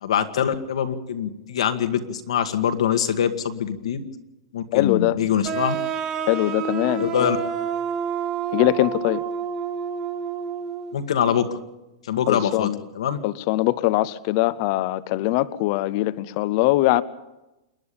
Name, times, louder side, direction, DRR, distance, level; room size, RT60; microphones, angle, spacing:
voice 1, 0.0-4.0 4.5-5.8 7.0-7.4 10.9-11.5 12.1-12.7 13.0-13.2, left 8 dB, 85° left, 2.1 m, -23 dB
voice 2, 4.7-5.2 6.3-7.3 8.5-9.2 12.3-12.8 13.2-17.0, left 17 dB, 40° left, 0.7 m, -22 dB
sound 1, 5.4-11.0, right 7 dB, 25° right, 1.7 m, -28 dB
28.0 x 11.0 x 8.6 m
supercardioid pair, 165°, 3 cm